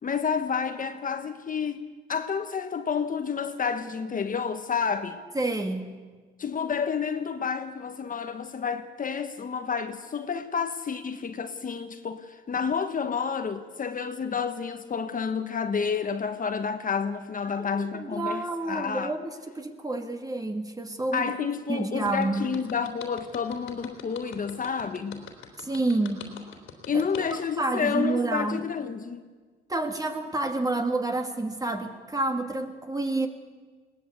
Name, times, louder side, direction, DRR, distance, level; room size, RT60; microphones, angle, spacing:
voice 1, 0.0-5.2 6.4-19.1 21.1-25.3 26.9-29.2, left 6 dB, 40° left, 1.4 m, -30 dB
voice 2, 5.3-5.9 17.4-21.3 21.7-22.5 25.6-26.2 26.9-27.0 27.6-28.6 29.7-33.3, right 2 dB, 20° right, 2.6 m, -29 dB
sound 1, 22.1-27.3, left 8 dB, 90° left, 3.3 m, -43 dB
21.0 x 19.0 x 8.3 m
cardioid pair, 90°, 20 cm